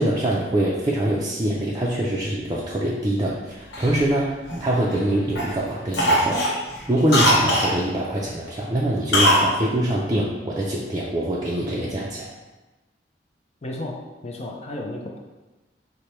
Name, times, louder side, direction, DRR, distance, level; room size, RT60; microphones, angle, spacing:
voice 1, 0.0-6.6 6.9-12.3, right 1 dB, 20° right, -6 dB, 0.4 m, -24 dB
Cough, 3.7-5.0 5.4-5.6 5.9-7.8 9.1-9.5 9.8-9.9, equal, 65° left, 0.9 m, -20 dB
voice 2, 13.6-15.2, left 1 dB, 35° left, 0 dB, 0.5 m, -33 dB
5.0 x 2.2 x 4.3 m, 1.1 s
head